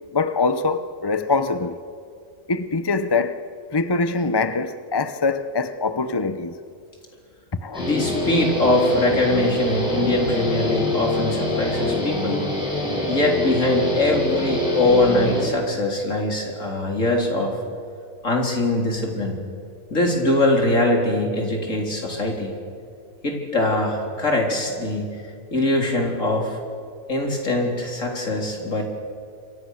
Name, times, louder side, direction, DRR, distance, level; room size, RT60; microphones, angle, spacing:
voice 1, 0.1-1.8 2.5-6.5 7.5-7.9, left 3 dB, 20° left, 0.7 m, -23 dB
Guitar, 7.7-15.4, left 1 dB, 5° right, 8.0 m, -25 dB
voice 2, 7.8-12.4 13.1-17.5 18.2-19.4 19.9-22.5 23.2-25.2 25.5-26.6 27.1-28.8, left 2 dB, 70° left, 4.4 m, -22 dB
27.0 x 24.0 x 6.6 m
omnidirectional pair, 1.4 m